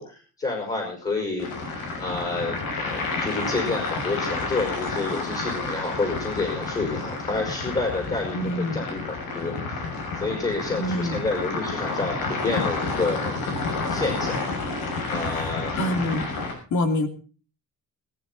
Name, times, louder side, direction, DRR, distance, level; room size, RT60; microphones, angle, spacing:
voice 1, 0.0-1.5 2.0-9.9 10.2-13.4 13.9-14.4 15.1-15.8, left 3 dB, 20° left, 1 dB, 5.2 m, -29 dB
sound 1, 1.4-16.5, left 3 dB, 75° left, 7.0 m, -30 dB
voice 2, 8.3-8.8 10.8-11.2 15.4-16.4 16.7-17.1, left 1 dB, 55° left, 8 dB, 2.7 m, -26 dB
18.0 x 14.5 x 4.0 m, 0.38 s
cardioid pair, 155°, 35 cm